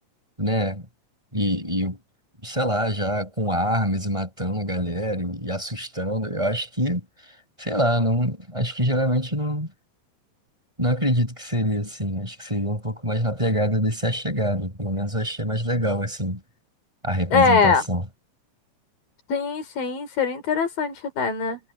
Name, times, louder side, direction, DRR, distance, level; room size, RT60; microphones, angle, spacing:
voice 1, 0.4-0.8 1.3-2.0 2.4-7.0 7.6-9.7 10.8-16.4 17.0-18.0, equal, 10° right, 7.9 m, -25 dB
voice 2, 17.3-17.8 19.3-21.6, left 5 dB, 85° left, 5.0 m, -22 dB
omnidirectional pair, 3.9 m